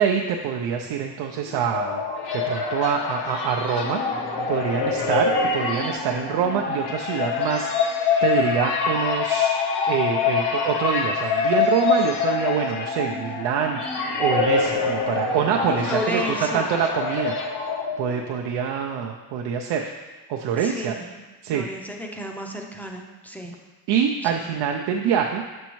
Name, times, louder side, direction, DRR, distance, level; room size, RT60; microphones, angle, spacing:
voice 1, 0.0-2.0 2.3-4.0 4.5-9.5 9.9-13.8 14.2-17.4 18.0-19.9 20.3-21.0 21.4-21.7 23.4-23.5 23.9-25.4, right 8 dB, 85° right, 2 dB, 0.5 m, -25 dB
sound 1, 1.4-18.4, left 5 dB, 80° left, 0.9 m, -25 dB
voice 2, 15.6-16.7 20.6-21.2 21.5-23.6 24.2-24.5, equal, 5° left, 1 dB, 0.4 m, -32 dB
6.9 x 5.3 x 3.0 m, 1.3 s
cardioid pair, 145°, 40 cm